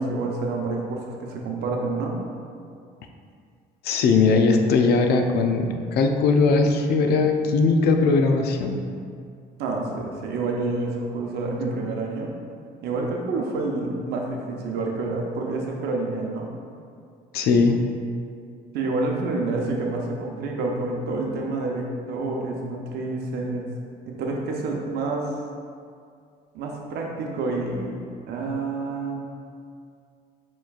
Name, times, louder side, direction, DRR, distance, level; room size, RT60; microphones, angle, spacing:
voice 1, 0.0-2.2 9.6-12.3 12.8-16.5 18.7-23.7 24.1-25.4 26.5-28.0 28.3-29.3, right 3 dB, 75° right, 0 dB, 0.7 m, -28 dB
voice 2, 3.8-8.8 17.3-17.8, left 4 dB, 70° left, 4 dB, 0.5 m, -19 dB
6.8 x 3.1 x 2.4 m, 2.3 s
cardioid pair, 110°, 17 cm